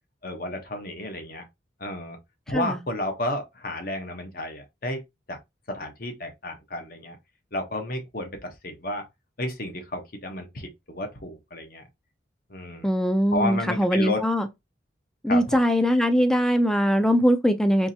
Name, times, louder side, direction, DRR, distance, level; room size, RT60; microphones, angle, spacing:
voice 1, 0.2-1.5 1.8-2.2 2.5-5.0 5.3-5.4 5.7-7.2 7.5-9.0 9.4-11.8 12.5-12.9 13.3-14.2 15.3-15.6, left 1 dB, 50° left, 1.1 m, -32 dB
voice 2, 2.5-2.8 12.8-14.5 15.2-17.9, equal, 5° left, 0.5 m, -21 dB
4.6 x 3.2 x 2.8 m
head